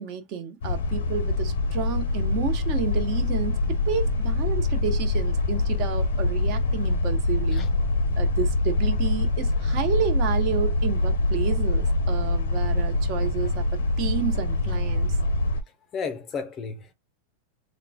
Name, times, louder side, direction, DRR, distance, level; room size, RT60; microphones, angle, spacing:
voice 1, 0.0-7.7 8.1-15.2, right 8 dB, 40° right, 1.1 m, -31 dB
sound 1, 0.6-15.6, left 2 dB, 85° left, 0.7 m, -24 dB
voice 2, 15.9-16.9, left 5 dB, 25° left, 0.6 m, -33 dB
3.6 x 2.3 x 4.2 m
supercardioid pair, 155°, 0 cm